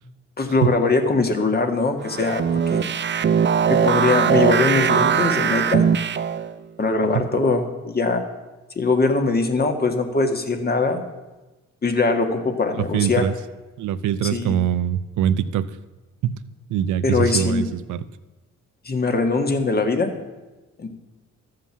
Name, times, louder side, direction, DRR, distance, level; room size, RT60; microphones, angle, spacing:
voice 1, 0.4-2.9 3.7-5.9 6.8-8.2 8.8-11.0 11.8-13.2 14.3-14.6 17.0-17.6 18.9-20.1 20.8-20.9, left 3 dB, 30° left, 6 dB, 1.8 m, -21 dB
sound 1, 2.1-6.5, right 7 dB, 40° right, 0.6 m, -20 dB
voice 2, 12.7-13.3 13.8-15.8 16.2-16.4 16.7-18.0, right 10 dB, 75° right, 15 dB, 0.7 m, -23 dB
13.0 x 7.6 x 7.3 m, 1.1 s
cardioid pair, 90°, 30 cm